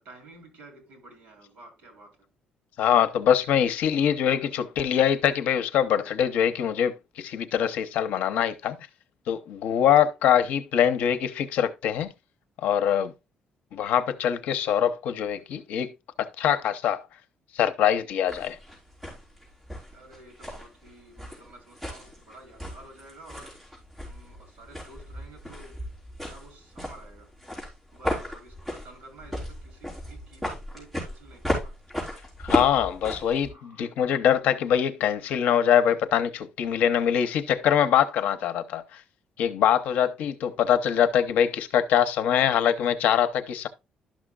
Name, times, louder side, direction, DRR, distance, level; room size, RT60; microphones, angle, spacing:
voice 1, 0.0-2.3 3.9-4.4 18.1-18.3 19.9-23.6 24.0-25.9 26.2-27.3 27.9-31.7 33.5-33.9, right 2 dB, 55° right, 4.0 m, -51 dB
voice 2, 2.8-8.8 9.3-12.1 12.6-13.1 13.7-17.0 17.5-18.6 32.4-39.0 39.4-43.7, left 9 dB, 75° left, 0.8 m, -23 dB
sound 1, 18.3-33.5, equal, 10° right, 3.9 m, -35 dB
12.0 x 6.3 x 2.3 m
cardioid pair, 175°, 3 cm